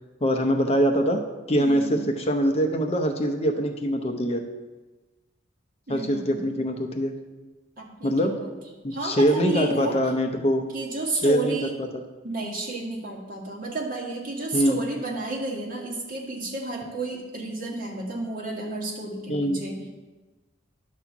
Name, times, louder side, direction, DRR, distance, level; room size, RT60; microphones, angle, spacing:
voice 1, 0.2-1.2 1.5-4.4 5.9-7.1 8.0-8.4 8.8-10.7 11.2-12.0 14.5-14.8 19.3-19.6, equal, 30° left, 5 dB, 0.7 m, -23 dB
voice 2, 1.6-2.0 5.9-6.5 7.8-8.5 8.9-10.0 10.7-11.7 12.2-19.9, right 2 dB, 45° right, -1 dB, 1.8 m, -31 dB
10.5 x 4.3 x 7.1 m, 1.2 s
head